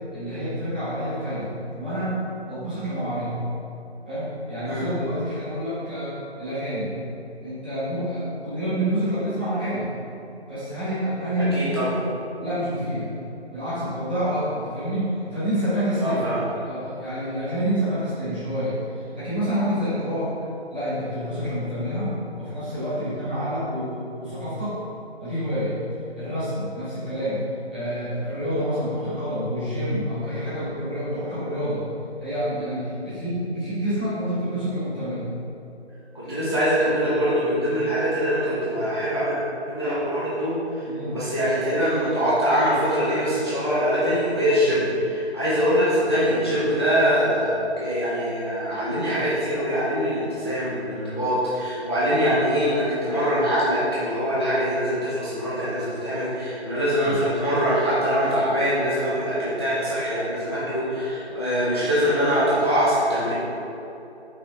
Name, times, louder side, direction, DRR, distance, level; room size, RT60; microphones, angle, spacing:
voice 1, 0.1-2.2 2.4-3.3 4.0-6.9 7.4-9.9 10.5-11.9 12.4-13.1 13.5-16.2 16.6-20.4 20.7-24.8 25.2-25.7 26.2-27.4 27.7-31.8 32.2-35.3 36.2-36.5 40.8-41.2 56.9-57.2, equal, 10° right, -16 dB, 1.1 m, -28 dB
voice 2, 11.5-11.9 16.0-16.4 36.1-39.4 39.8-40.6 41.0-63.3, equal, 25° left, -9 dB, 0.7 m, -23 dB
5.7 x 5.4 x 3.6 m, 3.0 s
figure-of-eight pair, 170°, 33 cm